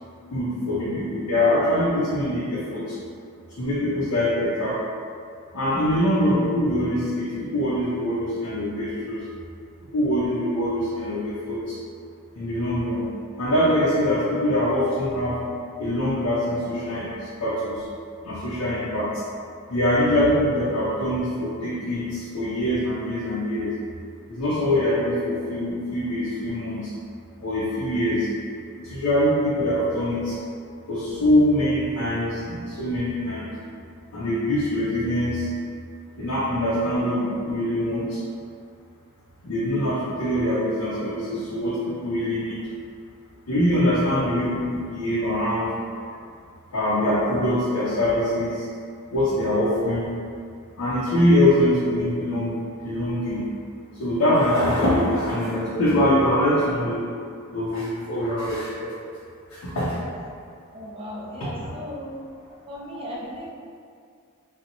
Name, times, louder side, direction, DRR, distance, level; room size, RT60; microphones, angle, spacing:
voice 1, 0.3-3.0 3.6-4.8 5.5-9.2 9.9-11.8 12.4-13.1 13.4-15.3 15.8-17.9 18.2-19.1 19.7-23.7 24.3-26.9 27.4-28.3 28.8-30.4 30.9-33.5 34.1-35.5 36.2-38.2 39.4-42.6 43.5-46.1 46.7-48.7 49.1-50.1 50.8-52.5 52.8-53.4 54.0-57.0 57.5-58.9 59.5-59.9 61.4-61.5, left 1 dB, 75° left, -9 dB, 0.5 m, -23 dB
voice 2, 60.7-62.2 62.7-63.5, equal, 25° right, -3 dB, 0.3 m, -36 dB
2.8 x 2.0 x 2.6 m, 2.2 s
head